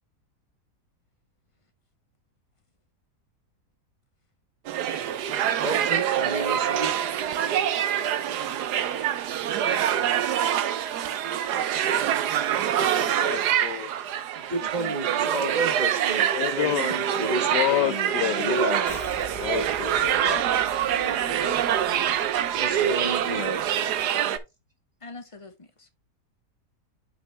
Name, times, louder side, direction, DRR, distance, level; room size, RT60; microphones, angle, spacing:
sound 1, 4.7-24.4, right 10 dB, 75° right, 1.3 m, -25 dB
voice 1, 5.5-7.0 14.3-19.0 22.6-23.6, right 2 dB, 30° right, 1.3 m, -31 dB
voice 2, 13.2-13.9 16.3-17.0 17.5-18.7 19.4-20.6, left 13 dB, 85° left, 1.2 m, -29 dB
voice 3, 14.6-15.4 20.9-21.9 25.0-25.9, left 2 dB, 25° left, 0.9 m, -44 dB
sound 2, 18.9-23.7, left 4 dB, 55° left, 2.7 m, -46 dB
7.3 x 5.6 x 3.3 m
omnidirectional pair, 1.8 m